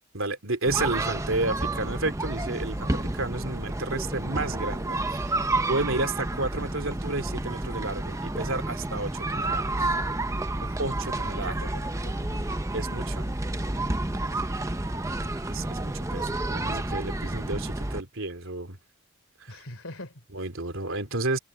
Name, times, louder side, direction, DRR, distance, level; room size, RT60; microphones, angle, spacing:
voice 1, 0.1-5.4 5.7-9.9 10.8-11.6 12.7-13.3 15.5-18.8 19.4-19.6 20.3-21.4, right 2 dB, 80° right, 3.0 m, -31 dB
sound 1, 0.6-18.0, right 2 dB, 15° right, 0.7 m, -30 dB
voice 2, 11.2-12.6 14.1-14.6 19.5-20.2, left 1 dB, 85° left, 3.5 m, -44 dB
head